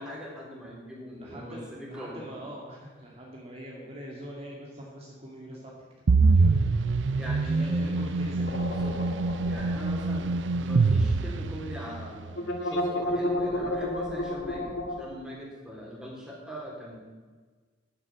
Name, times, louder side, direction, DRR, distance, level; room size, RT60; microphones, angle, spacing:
voice 1, 0.0-2.3 7.2-8.0 8.6-9.0 9.4-17.0, equal, 5° right, -4 dB, 3.6 m, -41 dB
voice 2, 1.1-5.7 6.1-6.6 7.4-9.0, right 1 dB, 35° right, -3 dB, 2.3 m, -43 dB
sound 1, 6.1-12.0, right 3 dB, 85° right, 0.5 m, -25 dB
sound 2, 8.4-11.0 11.3-11.4 12.3-15.0, left 1 dB, 80° left, 1.8 m, -31 dB
11.0 x 9.6 x 7.5 m, 1.4 s
head